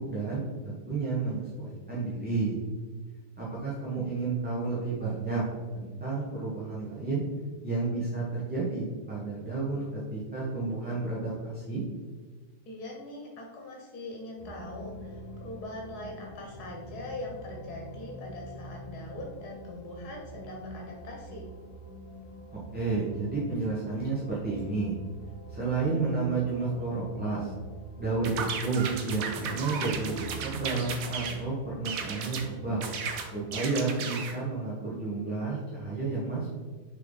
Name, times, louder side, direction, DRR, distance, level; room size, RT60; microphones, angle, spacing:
voice 1, 0.0-2.6 3.4-5.4 5.7-7.2 7.6-9.8 10.1-11.8 22.5-24.9 25.5-27.5 28.0-32.8 33.3-36.5, right 3 dB, 5° right, -8 dB, 1.0 m, -31 dB
voice 2, 12.6-21.5, left 2 dB, 85° left, -1 dB, 1.5 m, -41 dB
sound 1, 14.4-33.5, right 2 dB, 35° left, 2.0 m, -46 dB
sound 2, 28.2-31.4 31.8-32.5 32.8-34.4, right 6 dB, 70° right, 1.1 m, -35 dB
6.5 x 3.9 x 3.9 m, 1.4 s
omnidirectional pair, 1.6 m